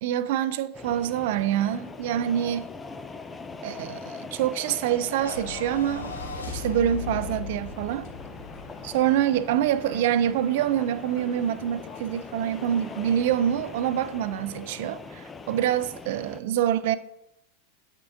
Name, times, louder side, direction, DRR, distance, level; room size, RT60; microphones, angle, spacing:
voice 1, 0.0-2.7 3.6-6.1 6.5-8.1 8.8-17.0, right 10 dB, 65° right, 0.4 m, -26 dB
sound 1, 0.7-16.4, left 4 dB, 15° left, 0.4 m, -42 dB
sound 2, 5.1-9.6, left 4 dB, 85° left, 1.1 m, -37 dB
sound 3, 6.1-15.0, left 6 dB, 50° left, 0.9 m, -49 dB
7.9 x 3.7 x 3.5 m
hypercardioid pair, 100°, 0 cm